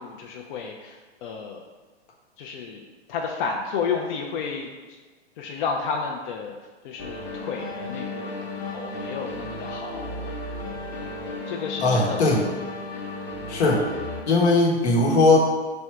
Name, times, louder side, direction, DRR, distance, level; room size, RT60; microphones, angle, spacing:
voice 1, 0.0-1.6 2.4-4.7 5.4-6.5 6.8-10.2 11.5-12.4, left 5 dB, 50° left, 1 dB, 0.4 m, -32 dB
sound 1, 7.0-14.2, left 2 dB, 30° left, 0.9 m, -34 dB
voice 2, 11.8-12.4 13.5-13.8 14.3-15.4, left 2 dB, 70° left, -1 dB, 1.1 m, -19 dB
3.3 x 2.6 x 4.5 m, 1.4 s
hypercardioid pair, 115°, 34 cm